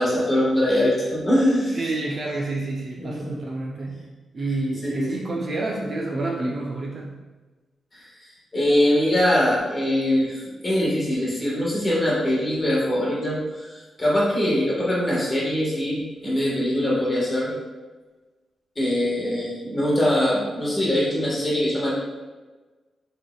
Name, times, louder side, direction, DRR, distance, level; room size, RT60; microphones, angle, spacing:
voice 1, 0.0-1.8 3.0-3.3 4.8-5.1 7.9-8.0 8.5-17.5 18.7-21.9, left 1 dB, 15° left, -6 dB, 1.4 m, -22 dB
voice 2, 1.7-7.3, right 2 dB, 35° right, -2 dB, 0.5 m, -29 dB
6.4 x 3.4 x 2.3 m, 1.3 s
wide cardioid pair, 175°, 0 cm